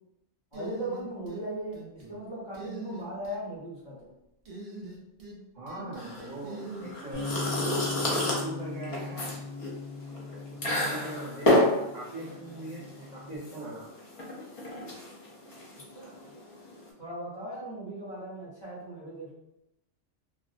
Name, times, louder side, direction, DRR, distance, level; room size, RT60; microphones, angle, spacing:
voice 1, 0.5-4.1 15.9-16.3 17.0-19.3, right 1 dB, 25° left, -9 dB, 0.7 m, -38 dB
sound 1, 0.5-1.4 1.7-2.2 2.5-3.4 4.5-5.4 5.7-7.3, right 2 dB, 60° right, 0.3 m, -43 dB
voice 2, 5.5-7.3 7.9-9.3 10.5-13.9, right 1 dB, 40° right, -9 dB, 0.9 m, -41 dB
sound 2, 6.0-16.9, left 1 dB, 55° left, 0.3 m, -30 dB
Bass guitar, 7.1-13.4, left 4 dB, 90° left, 1.0 m, -39 dB
2.5 x 2.0 x 2.5 m, 0.87 s
omnidirectional pair, 1.3 m